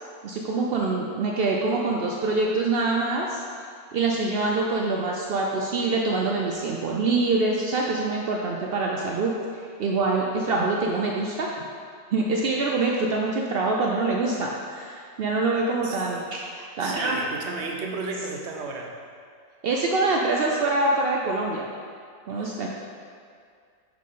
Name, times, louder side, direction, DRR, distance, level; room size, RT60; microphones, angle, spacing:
voice 1, 0.2-3.4 3.9-9.3 9.8-11.5 12.1-17.2 19.6-21.7 22.3-22.7, right 3 dB, 85° right, -1 dB, 0.5 m, -25 dB
voice 2, 16.8-19.0 22.3-22.6, right 3 dB, 55° right, 1 dB, 0.9 m, -34 dB
6.1 x 5.8 x 3.8 m, 2.2 s
omnidirectional pair, 1.6 m